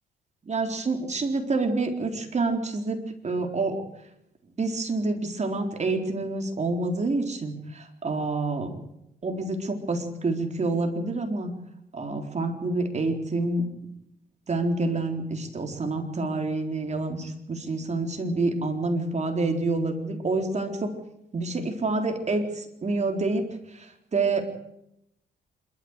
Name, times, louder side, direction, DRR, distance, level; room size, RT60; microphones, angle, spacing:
voice 1, 0.5-3.8 4.6-8.7 9.2-11.5 11.9-13.6 14.5-20.9 21.3-24.4, right 3 dB, 35° right, 4 dB, 4.1 m, -28 dB
26.5 x 13.5 x 8.3 m, 0.81 s
cardioid pair, 90°, 20 cm